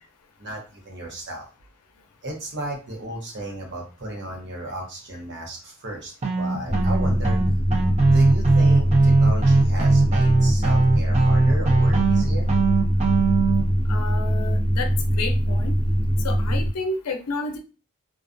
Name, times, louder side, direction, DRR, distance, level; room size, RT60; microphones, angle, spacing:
voice 1, 0.4-1.5 2.2-7.4 8.1-12.5, right 1 dB, 50° right, 0 dB, 0.8 m, -34 dB
sound 1, 6.2-13.6, right 3 dB, 30° right, 0.4 m, -20 dB
sound 2, 6.7-16.7, equal, 20° left, 0.5 m, -22 dB
voice 2, 13.9-15.7 16.2-17.6, left 3 dB, 85° left, 6 dB, 0.5 m, -31 dB
2.3 x 2.3 x 2.5 m, 0.32 s
head